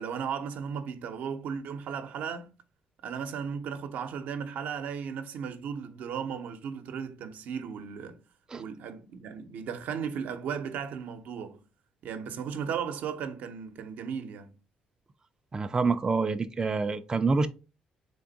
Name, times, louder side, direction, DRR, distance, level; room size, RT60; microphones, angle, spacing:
voice 1, 0.0-2.5 3.0-8.2 8.6-11.6 12.0-14.6, right 7 dB, 75° right, 0.7 m, -36 dB
voice 2, 15.5-17.5, right 4 dB, 25° right, 0.4 m, -27 dB
3.6 x 3.4 x 3.9 m
cardioid pair, 90°, 3 cm